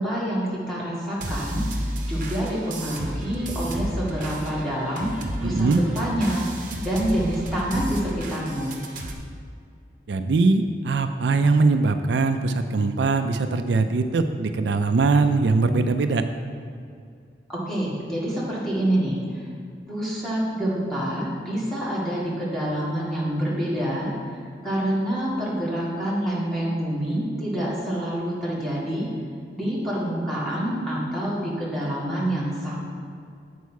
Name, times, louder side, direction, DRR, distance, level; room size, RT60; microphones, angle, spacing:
voice 1, 0.0-1.6 2.1-5.1 5.4-6.4 6.8-8.8 17.5-19.2 19.9-24.4 24.6-29.1 29.5-32.8, right 1 dB, ahead, -8 dB, 2.0 m, -27 dB
sound 1, 1.2-9.1, right 1 dB, 45° right, 0.9 m, -32 dB
voice 2, 5.4-5.8 10.1-16.2, right 3 dB, 80° right, 8 dB, 0.4 m, -21 dB
8.2 x 4.6 x 6.3 m, 2.3 s
head